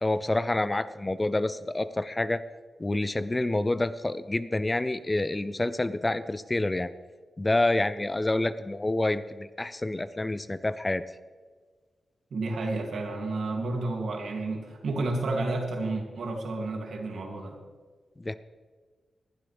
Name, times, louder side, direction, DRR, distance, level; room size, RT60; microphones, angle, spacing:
voice 1, 0.0-2.4 2.8-6.9 7.4-11.0 18.2-18.3, left 2 dB, 15° left, 14 dB, 0.3 m, -28 dB
voice 2, 12.3-17.6, right 2 dB, 70° right, 1 dB, 2.6 m, -31 dB
20.0 x 12.0 x 3.4 m, 1.5 s
wide cardioid pair, 175°, 0 cm